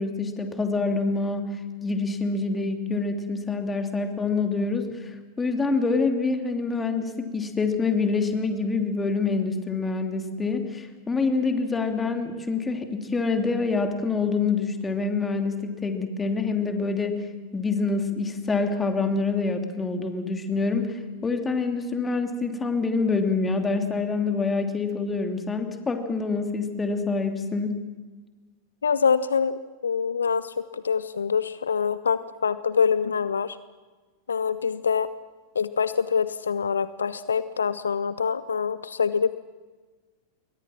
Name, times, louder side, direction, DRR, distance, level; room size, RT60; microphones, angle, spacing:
voice 1, 0.0-1.5 1.8-17.3 17.5-27.8, left 4 dB, 15° left, 5 dB, 2.8 m, -26 dB
voice 2, 28.8-33.6 34.3-35.1 35.5-39.3, left 6 dB, 70° left, 16 dB, 0.7 m, -25 dB
28.5 x 22.5 x 6.2 m, 1.3 s
figure-of-eight pair, 90°, 0 cm